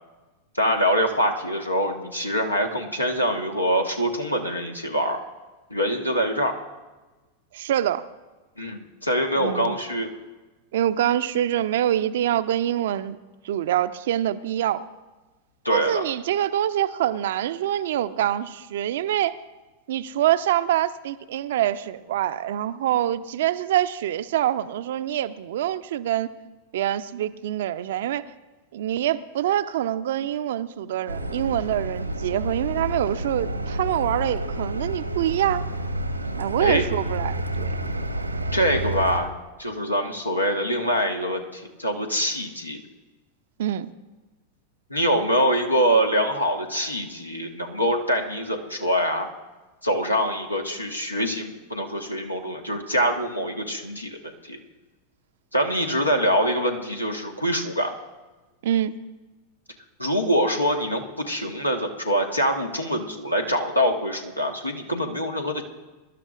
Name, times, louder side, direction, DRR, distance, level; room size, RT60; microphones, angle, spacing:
voice 1, 0.5-5.2 5.7-6.5 8.6-10.1 15.6-16.0 36.6-36.8 38.5-39.3 39.6-42.8 44.9-49.3 49.8-54.6 55.5-57.9 60.0-65.6, equal, 85° left, 3 dB, 1.4 m, -24 dB
voice 2, 7.5-8.0 9.4-9.8 10.7-13.2 13.4-14.8 15.7-19.4 19.9-26.3 26.7-28.2 28.7-35.7 36.4-37.8 43.6-43.9 58.6-58.9, right 12 dB, 55° right, 13 dB, 0.5 m, -25 dB
sound 1, 31.1-39.2, right 1 dB, 85° right, 1.1 m, -29 dB
24.5 x 12.0 x 2.5 m, 1.2 s
figure-of-eight pair, 90°, 0 cm